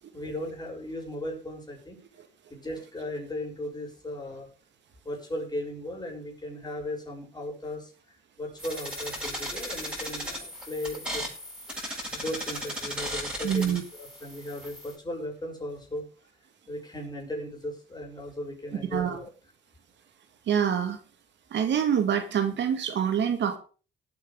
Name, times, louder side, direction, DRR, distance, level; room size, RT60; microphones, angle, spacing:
voice 1, 0.1-2.0 2.5-4.5 5.0-7.9 8.4-11.2 12.1-16.1 16.7-19.3, left 1 dB, 20° left, -1 dB, 6.9 m, -36 dB
sound 1, 8.6-14.9, equal, 5° right, 7.6 m, -36 dB
voice 2, 13.4-13.8 18.9-19.2 20.5-21.0 21.5-23.6, right 8 dB, 65° right, 7 dB, 1.9 m, -25 dB
19.0 x 9.1 x 3.8 m, 0.36 s
cardioid pair, 90°, 20 cm